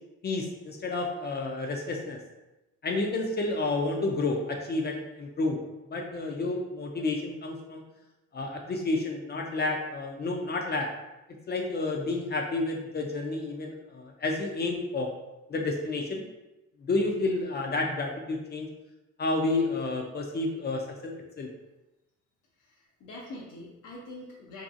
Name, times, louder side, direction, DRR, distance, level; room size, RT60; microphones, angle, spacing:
voice 1, 0.2-2.2 2.8-5.6 5.9-7.8 8.3-10.9 11.5-15.1 15.5-16.2 16.8-18.7 19.2-21.5, left 2 dB, 35° left, 1 dB, 0.4 m, -30 dB
voice 2, 22.6-24.6, left 1 dB, 85° left, -4 dB, 0.5 m, -44 dB
2.6 x 2.3 x 2.5 m, 1.0 s
cardioid pair, 90°, 30 cm